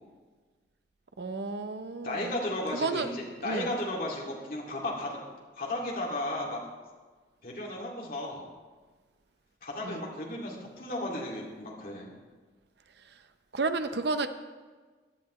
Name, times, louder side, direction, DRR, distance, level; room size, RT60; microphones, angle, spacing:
voice 1, 1.2-2.3 2.7-3.1 3.4-3.7 9.8-10.0 13.5-14.3, right 3 dB, 65° right, 9 dB, 0.7 m, -31 dB
voice 2, 2.0-5.2 5.6-6.6 7.4-8.5 9.6-12.2, left 1 dB, 50° left, -3 dB, 2.3 m, -34 dB
16.5 x 10.0 x 3.1 m, 1.4 s
head